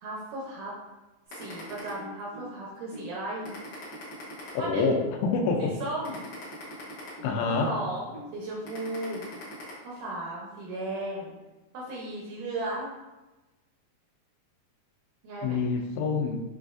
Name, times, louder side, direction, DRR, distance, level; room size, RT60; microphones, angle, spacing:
voice 1, 0.0-0.7 1.3-3.6 4.6-5.0 5.6-6.2 7.5-9.2 9.8-11.4 11.7-12.9 15.2-15.6, right 1 dB, 75° right, -4 dB, 2.0 m, -35 dB
sound 1, 1.3-2.5 2.9-3.1 3.4-5.1 5.5-5.7 6.0-7.7 8.1-8.3 8.6-9.7, left 1 dB, 70° left, 1.3 m, -42 dB
voice 2, 4.5-5.7 7.2-7.8 15.4-16.4, left 4 dB, 85° left, 3 dB, 2.4 m, -26 dB
6.9 x 2.4 x 2.4 m, 1.1 s
omnidirectional pair, 4.3 m